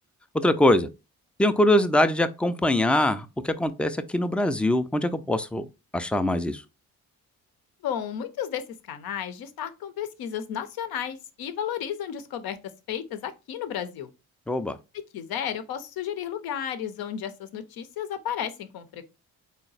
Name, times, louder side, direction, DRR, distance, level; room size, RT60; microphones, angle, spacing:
voice 1, 0.3-0.9 1.4-5.7 5.9-6.6 14.5-14.8, left 1 dB, 5° left, 0.3 m, -23 dB
voice 2, 7.8-12.6 12.9-14.1 14.9-19.1, left 9 dB, 75° left, 0.6 m, -33 dB
4.0 x 2.1 x 3.9 m
supercardioid pair, 50°, 37 cm